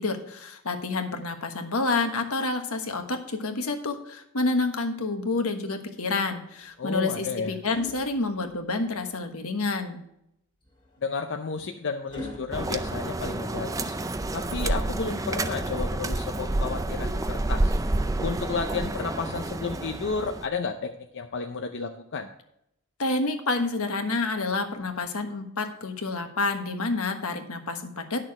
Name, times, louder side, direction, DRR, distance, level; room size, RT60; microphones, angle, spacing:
voice 1, 0.0-10.0 23.0-28.2, left 3 dB, 70° left, 6 dB, 1.3 m, -28 dB
sound 1, 6.6-9.0 10.6-13.8 15.6-16.7 18.7-20.5 21.8-22.0, left 1 dB, 20° left, 2.2 m, -47 dB
voice 2, 6.8-7.6 11.0-14.0 14.3-17.7 18.2-22.3, left 4 dB, 55° left, 5 dB, 0.6 m, -32 dB
sound 2, 12.5-20.5, right 2 dB, 15° right, 0.4 m, -29 dB
10.5 x 6.6 x 4.8 m, 0.80 s
head